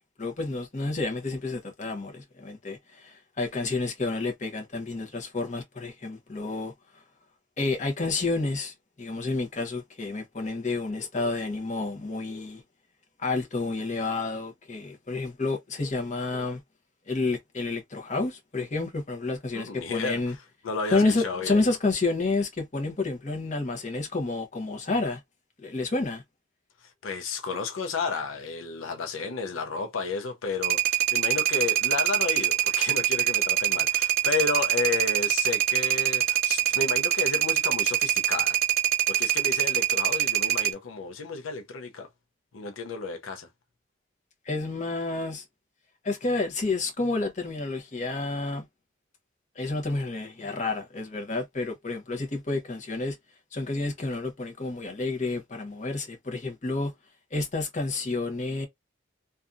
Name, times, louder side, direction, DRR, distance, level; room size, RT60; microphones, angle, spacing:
voice 1, 0.2-7.0 7.6-12.6 13.2-16.6 17.1-20.3 20.9-25.2 25.6-26.2 44.4-45.4 46.0-48.6 49.6-53.2 53.5-56.9 57.3-58.7, left 3 dB, 35° left, 0.8 m, -30 dB
voice 2, 19.5-20.2 20.6-21.6 27.0-38.6 39.1-42.1 42.5-43.5, left 4 dB, 85° left, 0.5 m, -32 dB
sound 1, 30.6-40.7, right 12 dB, 50° right, 0.5 m, -24 dB
2.7 x 2.3 x 2.4 m
head